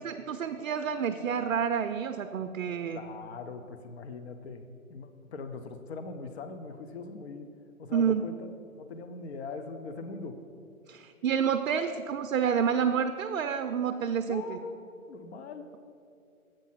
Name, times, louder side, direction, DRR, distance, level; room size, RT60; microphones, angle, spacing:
voice 1, 0.0-3.0 7.9-8.2 10.9-14.6, right 7 dB, 65° right, 8 dB, 0.5 m, -29 dB
voice 2, 2.9-4.6 4.9-7.5 7.8-8.3 8.7-10.4 14.2-15.8, left 4 dB, 50° left, 7 dB, 0.6 m, -41 dB
7.6 x 5.2 x 5.7 m, 2.5 s
hypercardioid pair, 145°, 43 cm